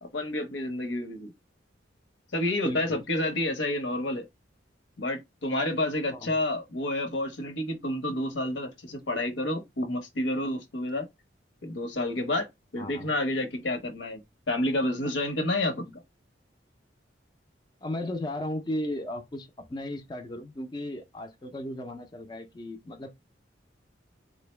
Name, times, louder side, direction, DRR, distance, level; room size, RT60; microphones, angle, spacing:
voice 1, 0.0-1.3 2.3-4.2 5.0-11.1 11.6-12.5 12.7-15.8, left 1 dB, 80° left, 0.8 m, -29 dB
voice 2, 2.6-3.1 6.1-6.3 12.8-13.1 17.8-23.1, left 1 dB, 25° left, 0.4 m, -35 dB
3.7 x 2.0 x 3.0 m
head